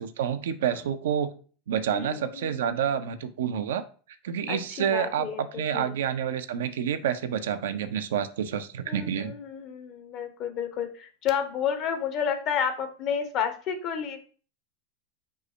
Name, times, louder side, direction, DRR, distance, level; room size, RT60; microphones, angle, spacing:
voice 1, 0.0-1.3 1.7-3.8 4.2-9.3, right 8 dB, 70° right, 10 dB, 0.4 m, -28 dB
voice 2, 1.9-2.6 4.5-6.0 8.9-14.3, left 7 dB, 45° left, 7 dB, 0.8 m, -31 dB
5.3 x 2.0 x 4.4 m, 0.40 s
hypercardioid pair, 85°, 0 cm